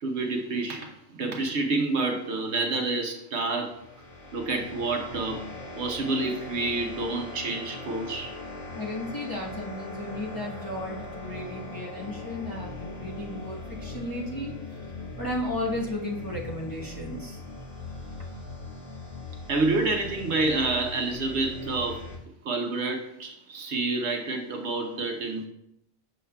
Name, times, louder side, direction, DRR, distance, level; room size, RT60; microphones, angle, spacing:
voice 1, 0.0-3.7 4.3-5.4 5.8-8.3 19.5-22.0 22.4-25.5, right 3 dB, 65° right, 3 dB, 1.0 m, -28 dB
sound 1, 3.7-22.2, left 2 dB, 45° left, 1.6 m, -40 dB
voice 2, 8.7-17.4, left 1 dB, 20° left, -5 dB, 0.9 m, -34 dB
6.9 x 6.4 x 2.2 m, 0.78 s
omnidirectional pair, 1.3 m